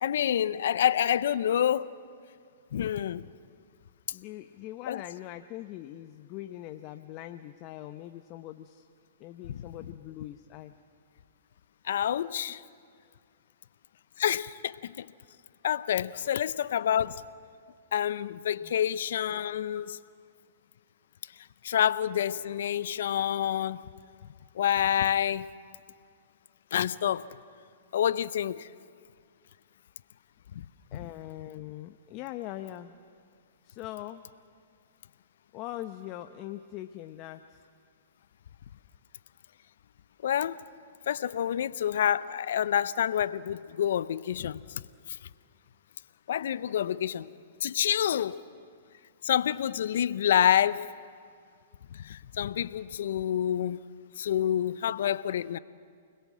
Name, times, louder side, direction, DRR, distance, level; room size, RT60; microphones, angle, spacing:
voice 1, 0.0-1.9 2.7-3.3 4.9-5.0 9.5-9.6 11.8-12.6 14.2-15.1 15.6-17.2 17.9-20.0 21.6-23.8 24.5-25.5 26.7-27.3 27.9-28.7 40.2-40.6 41.1-44.6 45.1-45.2 46.3-47.3 47.6-48.4 49.2-50.9 51.9-53.8 54.2-55.6, left 10 dB, 70° left, 0.7 m, -28 dB
voice 2, 4.1-8.8 9.2-10.7 18.6-18.8 19.7-20.0 30.9-33.0 33.6-34.3 35.5-37.6, left 14 dB, 40° left, 0.9 m, -42 dB
29.0 x 21.0 x 7.5 m
hypercardioid pair, 120°, 0 cm